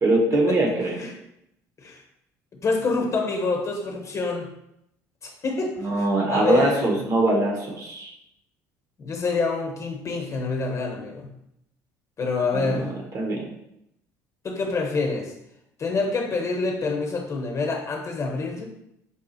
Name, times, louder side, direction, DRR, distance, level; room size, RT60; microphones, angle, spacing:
voice 1, 0.0-1.0 5.8-8.1 12.5-12.9 13.1-13.4, right 2 dB, 40° right, 0 dB, 1.0 m, -22 dB
voice 2, 2.6-4.5 5.2-5.9 6.3-6.9 9.0-11.3 12.2-13.0 14.4-15.3 15.8-18.6, left 3 dB, 35° left, 1 dB, 1.0 m, -26 dB
5.4 x 2.3 x 2.7 m, 0.80 s
hypercardioid pair, 65°, 9 cm